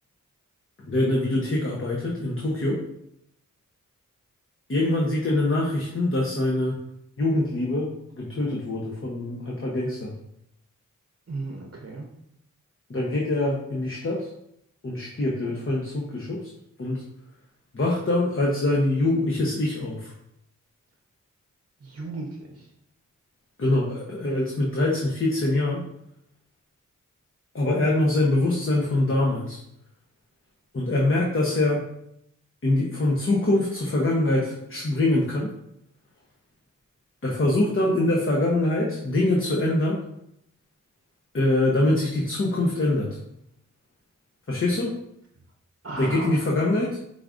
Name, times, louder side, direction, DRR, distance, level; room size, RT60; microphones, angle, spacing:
voice 1, 0.8-2.8 4.7-6.8 7.2-10.2 12.9-14.3 14.8-16.5 16.8-17.0 17.7-20.1 23.6-25.8 27.5-29.6 30.7-31.8 32.6-35.5 37.2-40.0 41.3-43.2 44.5-45.0 46.0-47.0, left 2 dB, 40° left, -2 dB, 0.9 m, -24 dB
voice 2, 11.3-12.1 21.8-22.7 45.8-46.5, right 3 dB, 45° right, 1 dB, 0.8 m, -35 dB
5.1 x 3.6 x 2.5 m, 0.77 s
cardioid pair, 45°, 32 cm